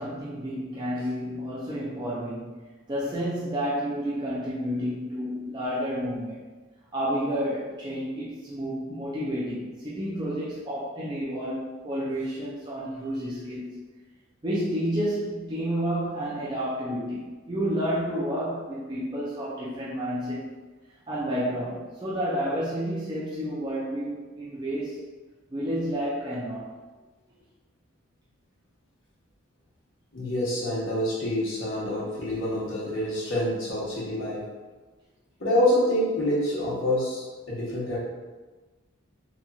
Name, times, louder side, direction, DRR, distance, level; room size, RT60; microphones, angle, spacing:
voice 1, 0.0-2.6 2.9-6.4 6.9-13.8 14.4-20.5 21.1-25.0 25.5-26.7, equal, 20° right, -9 dB, 0.4 m, -30 dB
voice 2, 30.1-34.4 35.4-38.0, left 1 dB, 65° left, -7 dB, 1.0 m, -26 dB
2.9 x 2.5 x 2.3 m, 1.3 s
head